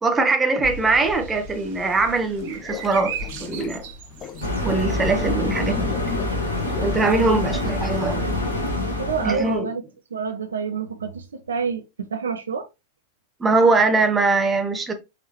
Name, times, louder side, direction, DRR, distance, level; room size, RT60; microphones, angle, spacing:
voice 1, 0.0-3.1 3.4-3.8 4.6-5.9 6.8-8.3 9.2-9.7 13.4-14.9, right 3 dB, 15° right, 1.1 m, -21 dB
sound 1, 0.6-7.9, right 3 dB, 50° right, 1.1 m, -39 dB
sound 2, 1.9-8.7, left 7 dB, 30° left, 0.6 m, -38 dB
sound 3, 4.4-9.6, left 1 dB, 85° left, 1.7 m, -26 dB
voice 2, 9.0-9.8 10.1-12.7, right 5 dB, 70° right, 0.6 m, -28 dB
4.8 x 3.6 x 3.0 m
figure-of-eight pair, 90°, 0 cm